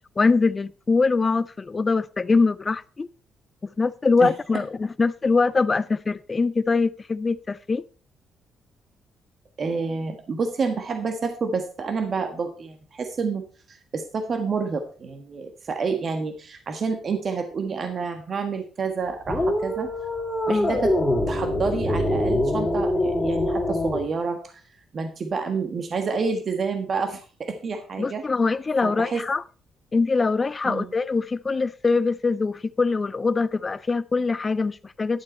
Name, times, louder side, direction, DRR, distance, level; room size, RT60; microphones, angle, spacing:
voice 1, 0.2-3.1 3.8-7.8 20.5-20.7 28.0-29.4 29.9-35.2, left 4 dB, 30° left, 0.4 m, -23 dB
voice 2, 4.2-4.6 9.6-19.9 20.5-20.9 21.3-24.6 24.9-28.2 28.8-29.2 30.6-30.9, right 4 dB, 45° right, 1.5 m, -29 dB
sound 1, 19.3-24.1, left 1 dB, 10° left, 2.8 m, -24 dB
12.0 x 7.3 x 4.3 m
cardioid pair, 90°, 0 cm